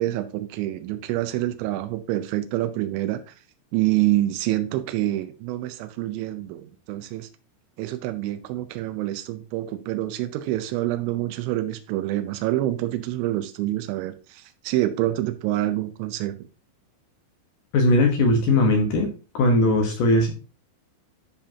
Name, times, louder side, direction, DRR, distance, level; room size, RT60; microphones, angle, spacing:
voice 1, 0.0-3.3 3.7-7.3 7.8-16.4, right 15 dB, 90° right, 3.1 m, -27 dB
voice 2, 17.7-19.1 19.3-20.3, left 1 dB, 65° left, 2.2 m, -19 dB
12.5 x 5.1 x 2.8 m
omnidirectional pair, 5.3 m